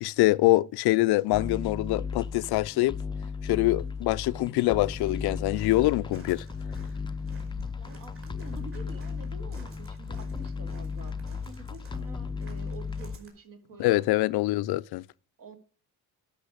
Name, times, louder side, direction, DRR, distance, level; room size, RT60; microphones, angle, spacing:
voice 1, 0.0-3.0 3.4-6.4 13.8-15.0, left 19 dB, 80° left, 0.5 m, -24 dB
sound 1, 1.3-13.2, left 5 dB, 15° left, 0.5 m, -35 dB
Walk footsteps, 4.7-13.3, right 4 dB, 35° right, 3.8 m, -53 dB
voice 2, 7.7-14.4 15.4-15.6, right 4 dB, 55° right, 2.4 m, -48 dB
12.0 x 6.2 x 5.0 m
cardioid pair, 140°, 38 cm